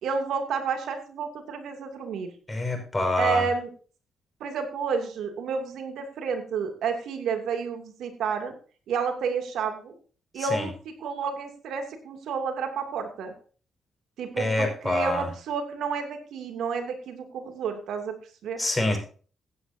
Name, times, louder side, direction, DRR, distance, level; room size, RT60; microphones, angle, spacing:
voice 1, 0.0-2.3 3.2-3.7 4.4-8.5 8.9-10.0 10.3-13.3 14.2-18.2 18.4-18.6, right 5 dB, 75° right, 5 dB, 2.7 m, -30 dB
voice 2, 2.5-3.4 10.4-10.7 14.4-15.3 18.6-19.0, left 2 dB, 20° left, 3 dB, 5.5 m, -26 dB
16.0 x 9.8 x 2.8 m, 0.40 s
supercardioid pair, 70°, 0 cm